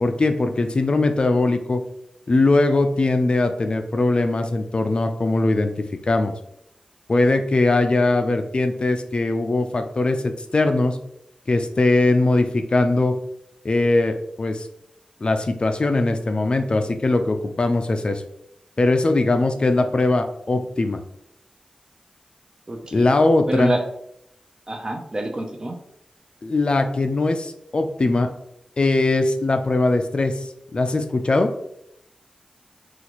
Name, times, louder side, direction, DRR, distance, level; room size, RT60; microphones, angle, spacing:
voice 1, 0.0-1.8 2.3-6.3 7.1-11.0 11.5-13.2 13.6-14.7 15.2-18.2 18.8-21.0 22.9-23.8 26.4-28.3 28.8-31.5, left 2 dB, 45° left, 6 dB, 0.4 m, -20 dB
voice 2, 22.7-23.1 23.5-23.8 24.7-25.7, right 1 dB, 35° right, 4 dB, 0.5 m, -26 dB
4.0 x 2.5 x 2.9 m, 0.77 s
wide cardioid pair, 80°, 2 cm